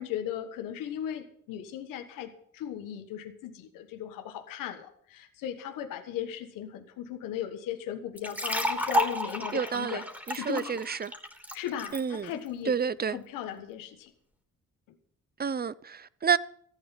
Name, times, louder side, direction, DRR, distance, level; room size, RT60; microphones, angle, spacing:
voice 1, 0.0-10.0 10.3-10.9 11.5-12.7 13.1-14.1, left 10 dB, 90° left, 1.4 m, -37 dB
sound 1, 8.2-12.0, equal, 5° right, 3.2 m, -31 dB
voice 2, 9.5-11.1 11.9-12.3 12.6-13.2 15.4-16.4, right 6 dB, 30° right, 0.7 m, -29 dB
14.0 x 10.5 x 5.7 m
supercardioid pair, 65°, 32 cm